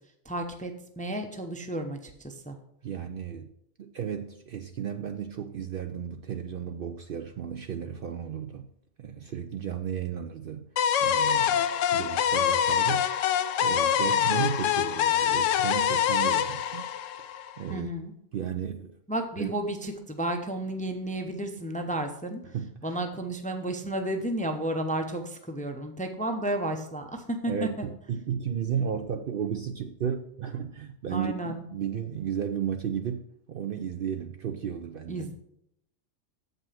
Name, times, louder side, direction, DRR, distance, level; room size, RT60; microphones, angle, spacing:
voice 1, 0.2-2.5 17.7-18.1 19.1-22.4 22.8-27.9 31.1-31.6 35.1-35.3, right 1 dB, 10° left, 5 dB, 0.6 m, -32 dB
voice 2, 2.8-3.5 3.8-8.7 9.0-10.7 11.0-13.1 13.6-16.9 17.6-17.9 18.3-19.0 19.4-19.5 22.5-23.0 27.5-33.2 33.5-35.2, right 8 dB, 60° right, 6 dB, 0.6 m, -34 dB
sound 1, 10.8-17.7, left 9 dB, 85° left, 0.9 m, -25 dB
7.5 x 5.4 x 5.6 m, 0.75 s
omnidirectional pair, 1.3 m